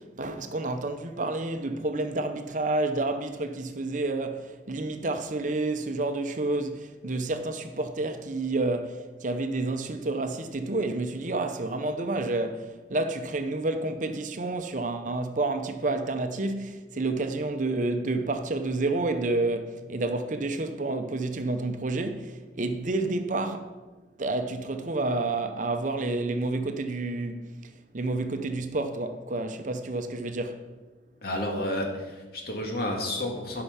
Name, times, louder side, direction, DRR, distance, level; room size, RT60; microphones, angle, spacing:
voice 1, 0.0-23.7 24.2-27.4 27.9-30.6, right 2 dB, 45° right, 0.7 m, -29 dB
voice 2, 31.2-33.6, left 1 dB, 60° left, 1.9 m, -31 dB
11.5 x 5.8 x 5.7 m
head